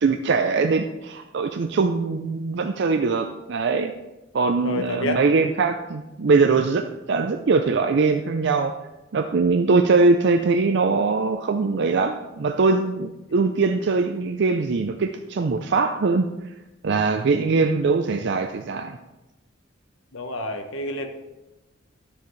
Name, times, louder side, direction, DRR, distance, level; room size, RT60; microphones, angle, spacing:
voice 1, 0.0-3.9 4.3-8.7 9.1-16.3 16.8-19.0, right 4 dB, 60° right, 6 dB, 0.5 m, -22 dB
voice 2, 4.6-5.2 17.3-17.6 20.1-21.1, left 1 dB, 85° left, 6 dB, 1.1 m, -29 dB
11.5 x 7.0 x 3.2 m, 1.0 s
head